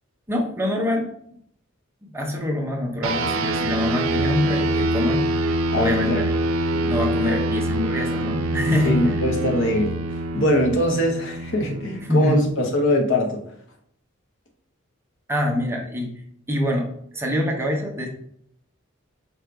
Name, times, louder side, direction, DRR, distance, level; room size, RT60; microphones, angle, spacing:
voice 1, 0.3-1.1 2.1-5.2 5.7-6.4 6.9-9.2 12.0-12.4 15.3-16.2 16.5-18.1, left 1 dB, 10° right, 1 dB, 0.7 m, -24 dB
sound 1, 3.0-12.8, right 2 dB, 85° right, 0.5 m, -25 dB
voice 2, 5.7-6.2 6.7-6.8 7.2-7.5 8.8-9.9 10.3-13.4, left 1 dB, 65° left, 3 dB, 0.9 m, -22 dB
4.4 x 2.6 x 4.5 m, 0.67 s
head